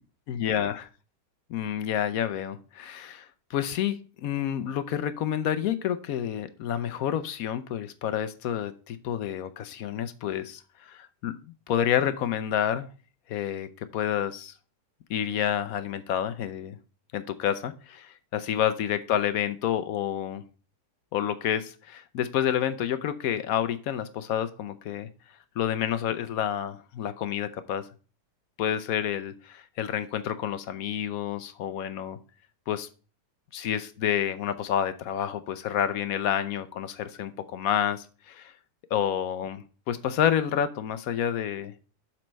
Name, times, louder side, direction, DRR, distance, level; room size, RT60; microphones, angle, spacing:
voice 1, 0.3-0.9 1.5-11.3 11.7-12.9 13.3-14.5 15.1-16.8 17.1-20.4 21.1-25.1 25.6-27.9 28.6-32.2 32.7-32.9 33.5-38.5 38.9-41.7, left 10 dB, 70° left, 12 dB, 0.9 m, -29 dB
7.6 x 4.4 x 5.2 m, 0.36 s
omnidirectional pair, 1.9 m